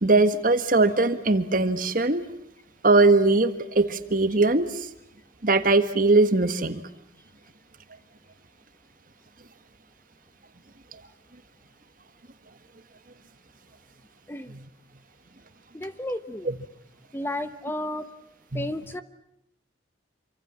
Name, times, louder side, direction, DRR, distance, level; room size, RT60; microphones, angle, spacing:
voice 1, 0.0-2.2 2.8-4.7 5.4-6.8 14.5-14.6 16.4-16.5 18.5-18.7, right 3 dB, 50° right, 10 dB, 1.7 m, -20 dB
voice 2, 15.7-16.5 17.1-18.1 18.5-19.0, left 1 dB, 15° left, 11 dB, 1.0 m, -32 dB
27.5 x 25.5 x 7.4 m, 0.78 s
head